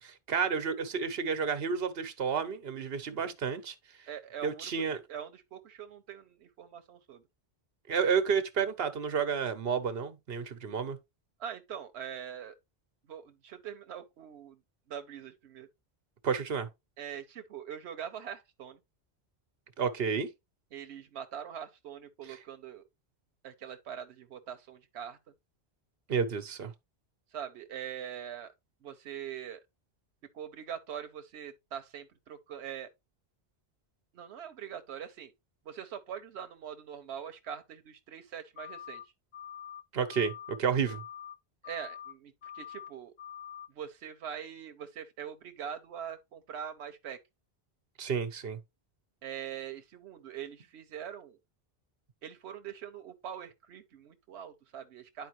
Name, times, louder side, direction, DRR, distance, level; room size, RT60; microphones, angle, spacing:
voice 1, 0.0-4.1 4.4-5.0 7.9-11.0 16.2-16.7 19.8-20.3 22.3-22.4 26.1-26.7 39.9-41.0 48.0-48.6, right 6 dB, 65° right, 1.2 m, -31 dB
voice 2, 4.1-7.2 11.4-12.6 13.1-14.6 14.9-15.7 17.0-18.8 20.7-22.8 23.4-25.2 27.3-28.5 28.8-29.6 30.3-32.9 34.1-35.3 35.7-39.0 41.6-43.1 43.7-47.2 49.2-51.4 52.2-55.3, right 9 dB, 85° right, 1.0 m, -43 dB
sound 1, 38.6-39.0 39.3-39.8 40.1-40.6 40.9-41.3 41.6-42.1 42.4-42.9 43.2-43.7, left 9 dB, 75° left, 1.3 m, -45 dB
10.5 x 4.5 x 3.1 m
omnidirectional pair, 1.1 m